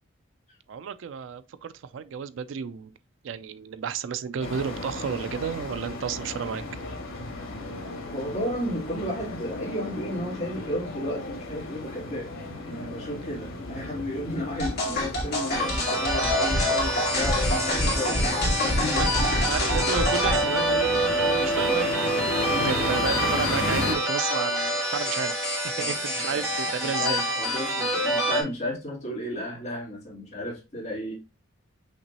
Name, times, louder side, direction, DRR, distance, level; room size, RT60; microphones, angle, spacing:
voice 1, 0.7-2.9 3.2-6.6 13.8-13.9 19.0-19.1 19.4-22.0 22.6-25.3 25.6-27.2, right 7 dB, 70° right, 0.3 m, -32 dB
sound 1, 4.4-23.9, left 2 dB, 85° left, 1.4 m, -34 dB
voice 2, 8.1-12.3 12.6-19.2 22.5-22.8 25.8-31.1, left 1 dB, 35° left, 2.2 m, -33 dB
sound 2, 14.6-20.4, left 1 dB, 50° left, 1.8 m, -26 dB
sound 3, 15.5-28.4, right 1 dB, 15° right, 1.6 m, -27 dB
5.8 x 3.0 x 2.8 m
head